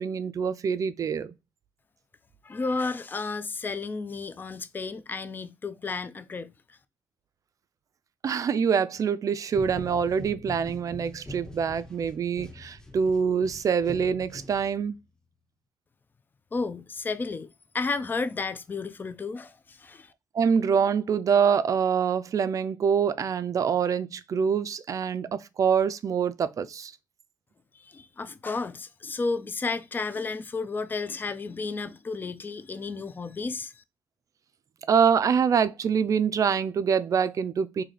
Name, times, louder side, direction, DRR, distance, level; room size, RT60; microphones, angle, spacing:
voice 1, 0.0-1.3 8.2-15.0 20.3-26.9 34.9-37.8, right 7 dB, 50° right, 0.4 m, -25 dB
voice 2, 2.4-6.8 16.5-20.1 27.7-33.8, left 4 dB, 25° left, 0.4 m, -32 dB
sound 1, 9.5-15.0, left 1 dB, 10° left, 0.8 m, -43 dB
3.2 x 2.7 x 3.8 m
cardioid pair, 85°, 7 cm